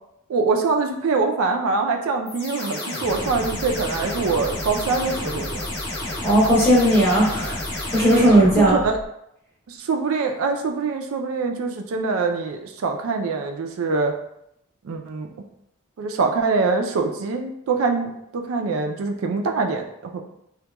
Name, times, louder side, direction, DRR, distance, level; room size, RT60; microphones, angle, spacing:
voice 1, 0.3-5.7 8.6-9.0 9.7-14.2 14.8-15.3 16.0-20.2, right 4 dB, 90° right, 4 dB, 0.4 m, -24 dB
sound 1, 2.3-9.1, left 1 dB, 55° left, 0.7 m, -30 dB
voice 2, 6.2-8.8, right 1 dB, 10° left, -6 dB, 0.6 m, -17 dB
2.8 x 2.2 x 2.2 m, 0.76 s
head